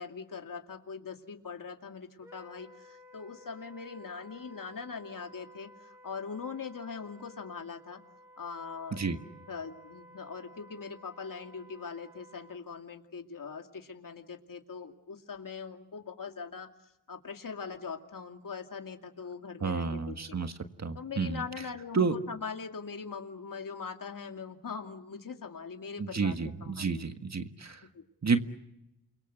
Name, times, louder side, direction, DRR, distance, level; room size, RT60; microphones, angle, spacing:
voice 1, 0.0-8.0 8.4-9.0 9.5-16.7 17.1-20.4 20.9-26.4 26.6-27.1 27.9-28.0, left 5 dB, 70° left, 5 dB, 2.5 m, -41 dB
Wind instrument woodwind instrument, 2.2-12.6, equal, 10° right, 7.3 m, -55 dB
voice 2, 19.6-20.5 20.8-21.4 21.9-22.2 26.0-27.8 28.2-28.4, right 5 dB, 50° right, 7 dB, 1.7 m, -30 dB
29.0 x 23.0 x 7.9 m, 0.86 s
cardioid pair, 65°, 34 cm